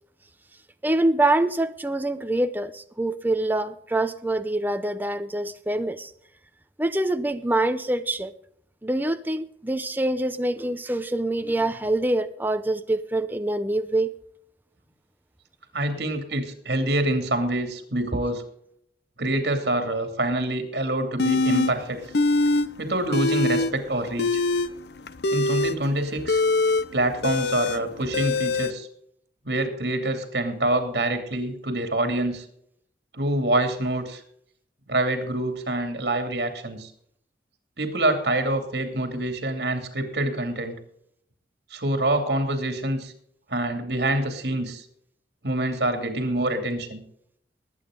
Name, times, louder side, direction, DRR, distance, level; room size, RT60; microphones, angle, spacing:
voice 1, 0.8-6.1 6.8-8.3 8.8-14.1, right 1 dB, 10° right, 9 dB, 0.7 m, -25 dB
voice 2, 15.7-18.4 19.2-22.0 22.8-24.4 25.3-26.4 26.9-28.9 29.4-32.4 33.1-34.2 34.9-36.9 37.8-40.7 41.7-43.1 43.5-44.8 45.4-47.0, right 1 dB, 65° right, 7 dB, 2.7 m, -26 dB
sound 1, 21.2-21.7 22.1-22.7 22.9-23.7 24.1-28.7, left 2 dB, 65° left, 0.7 m, -23 dB
20.5 x 8.9 x 3.8 m, 0.69 s
head